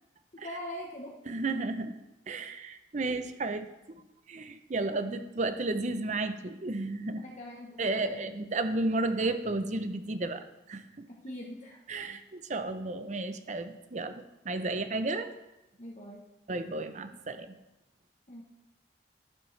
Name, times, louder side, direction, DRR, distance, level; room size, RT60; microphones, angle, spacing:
voice 1, 0.4-1.1 7.2-8.2 11.1-11.8 15.8-16.2 18.3-18.4, left 1 dB, 40° left, -2 dB, 1.0 m, -42 dB
voice 2, 1.3-1.9 2.3-3.7 4.3-7.2 7.8-10.4 10.7-10.8 11.9-15.3 16.5-17.5, right 2 dB, 40° right, 9 dB, 0.6 m, -32 dB
12.0 x 7.3 x 3.3 m, 0.95 s
head